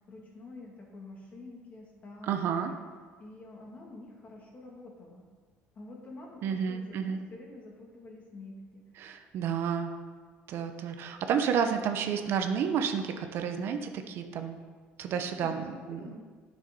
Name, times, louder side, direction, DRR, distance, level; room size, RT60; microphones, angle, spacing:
voice 1, 0.1-2.8 3.2-5.3 5.7-8.8 15.1-16.2, left 2 dB, 40° left, -1 dB, 2.5 m, -48 dB
voice 2, 2.2-2.7 6.4-7.2 9.0-9.9 10.5-14.6 15.0-16.2, right 7 dB, 65° right, 6 dB, 0.9 m, -31 dB
9.3 x 6.3 x 5.5 m, 1.5 s
cardioid pair, 115°, 4 cm